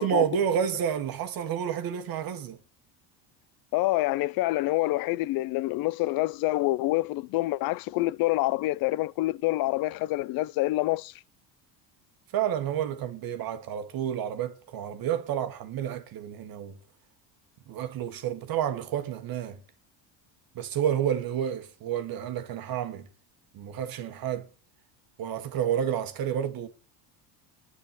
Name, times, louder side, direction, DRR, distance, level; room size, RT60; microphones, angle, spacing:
voice 1, 0.0-2.6 12.3-16.8 17.7-19.6 20.5-23.1 23.5-24.5 25.2-26.7, right 9 dB, 50° right, 1.4 m, -30 dB
voice 2, 3.7-11.1, left 18 dB, 50° left, 0.5 m, -27 dB
9.6 x 7.0 x 7.4 m
cardioid pair, 125°, 45 cm